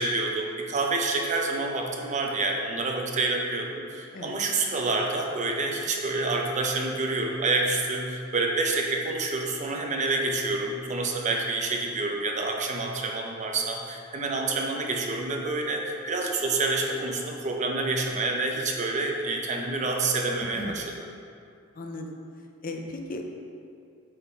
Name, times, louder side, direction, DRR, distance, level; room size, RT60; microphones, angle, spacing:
voice 1, 0.0-20.8, right 3 dB, 35° right, 1 dB, 0.7 m, -28 dB
voice 2, 21.7-22.2 22.6-23.4, left 1 dB, 45° left, 2 dB, 0.6 m, -36 dB
7.8 x 3.8 x 4.5 m, 2.4 s
head